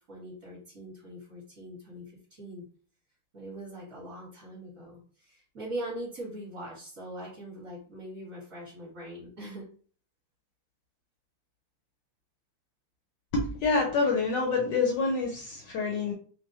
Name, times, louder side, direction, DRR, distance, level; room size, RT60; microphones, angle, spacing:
voice 1, 0.1-2.6 3.3-9.7, right 1 dB, 45° right, -8 dB, 1.4 m, -41 dB
voice 2, 13.3-16.1, left 4 dB, 70° left, 0 dB, 1.0 m, -27 dB
3.8 x 2.1 x 2.7 m, 0.43 s
omnidirectional pair, 2.4 m